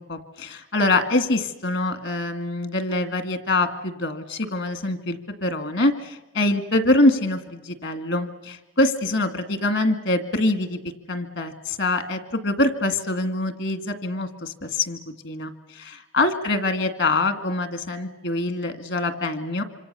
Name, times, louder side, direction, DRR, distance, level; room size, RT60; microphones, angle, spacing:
voice 1, 0.0-10.8 11.1-19.6, left 2 dB, 70° left, 9 dB, 2.2 m, -24 dB
26.5 x 26.0 x 6.9 m, 1.0 s
head